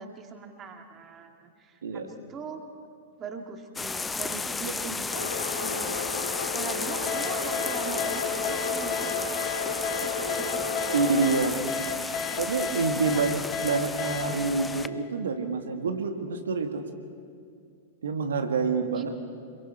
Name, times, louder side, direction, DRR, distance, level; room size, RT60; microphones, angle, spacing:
voice 1, 0.0-2.6 3.2-6.2 6.5-9.3 10.0-10.6 13.1-13.3 13.8-14.1 19.0-19.1, right 5 dB, 25° right, 5 dB, 1.9 m, -41 dB
sound 1, 3.8-14.9, left 4 dB, 10° left, 0.6 m, -34 dB
voice 2, 4.8-5.3 10.9-11.9 12.4-16.8 18.0-19.1, right 4 dB, 65° right, 5 dB, 1.7 m, -28 dB
sound 2, 5.1-11.4, left 4 dB, 70° left, 2.8 m, -33 dB
sound 3, 7.1-15.5, left 5 dB, 30° left, 1.9 m, -33 dB
26.5 x 23.0 x 4.5 m, 2.3 s
figure-of-eight pair, 100°, 0 cm